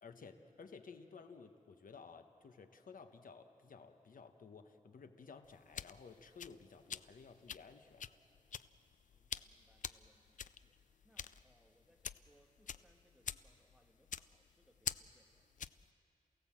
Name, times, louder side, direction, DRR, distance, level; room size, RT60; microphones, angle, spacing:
voice 1, 0.0-8.1, left 5 dB, 85° left, 7 dB, 1.2 m, -55 dB
sound 1, 5.4-15.9, left 7 dB, 70° left, 0.4 m, -47 dB
voice 2, 9.1-10.8 11.0-15.5, equal, 5° right, 2 dB, 1.5 m, -72 dB
28.0 x 17.5 x 7.5 m, 2.7 s
wide cardioid pair, 155°, 14 cm